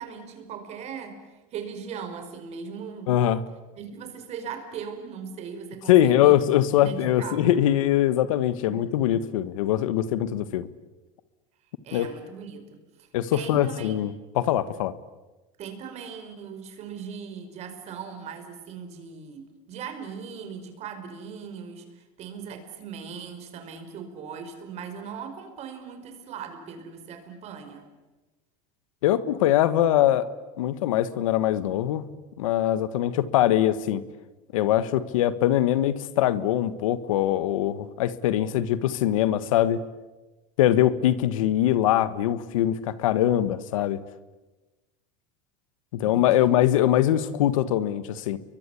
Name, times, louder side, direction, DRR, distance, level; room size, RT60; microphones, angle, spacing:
voice 1, 0.0-3.2 3.8-6.3 6.7-7.4 8.6-8.9 11.8-14.0 15.6-27.9 46.0-46.5, right 6 dB, 40° right, 7 dB, 5.1 m, -39 dB
voice 2, 3.1-3.4 5.9-10.7 11.9-12.1 13.1-14.9 29.0-30.3 30.6-32.1 32.4-34.0 34.5-39.8 40.6-44.0 45.9-48.4, left 12 dB, 90° left, 15 dB, 1.5 m, -22 dB
30.0 x 23.0 x 8.5 m, 1.1 s
supercardioid pair, 135°, 17 cm